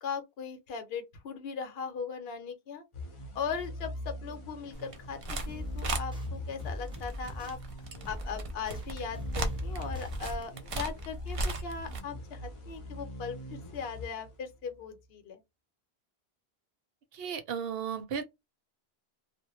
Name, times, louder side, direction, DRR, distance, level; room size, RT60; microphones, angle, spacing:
voice 1, 0.0-2.8 3.3-5.2 5.5-7.6 8.1-13.4 13.7-15.4, left 6 dB, 75° left, 0.9 m, -39 dB
sound 1, 2.9-14.8, left 1 dB, 40° left, 0.6 m, -42 dB
sound 2, 4.7-5.5 5.8-6.0 6.9-12.0, right 2 dB, 50° right, 0.4 m, -36 dB
sound 3, 5.5-6.3 6.6-7.6 8.0-8.8 9.1-10.1, left 1 dB, 5° right, 0.8 m, -42 dB
voice 2, 17.1-18.3, right 7 dB, 70° right, 0.8 m, -35 dB
2.1 x 2.0 x 2.8 m
omnidirectional pair, 1.0 m